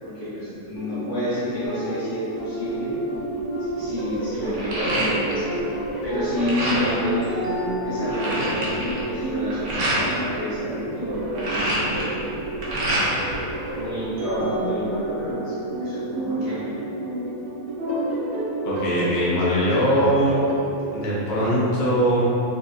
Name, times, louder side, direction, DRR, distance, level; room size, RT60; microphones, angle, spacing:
voice 1, 0.0-2.9 3.6-5.5 6.0-7.3 7.8-12.0 13.7-15.5 15.8-16.7, left 1 dB, 75° left, -12 dB, 1.6 m, -29 dB
sound 1, 0.7-20.6, right 1 dB, 65° right, 0.8 m, -30 dB
sound 2, 1.6-4.2 4.6-8.6, right 1 dB, 90° left, 1.2 m, -33 dB
sound 3, 3.1-3.4 3.8-5.6 5.9-7.1 7.5-7.6 7.8-10.1 11.1-13.3 13.7-14.6, right 1 dB, 85° right, 1.2 m, -27 dB
voice 2, 18.6-20.4 20.9-22.3, equal, 45° left, -8 dB, 0.7 m, -21 dB
3.8 x 2.2 x 2.7 m, 2.9 s
omnidirectional pair, 1.5 m